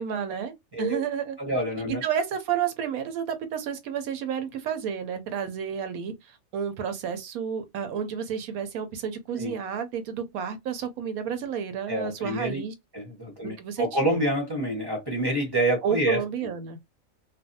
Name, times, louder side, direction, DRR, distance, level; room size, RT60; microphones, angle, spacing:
voice 1, 0.0-1.4 2.0-12.7 13.4-14.2 15.8-16.8, right 7 dB, 90° right, 1.1 m, -31 dB
voice 2, 1.4-2.0 9.4-9.5 11.9-12.6 12.9-16.2, right 1 dB, 20° right, 0.8 m, -27 dB
2.5 x 2.2 x 2.6 m
omnidirectional pair, 1.5 m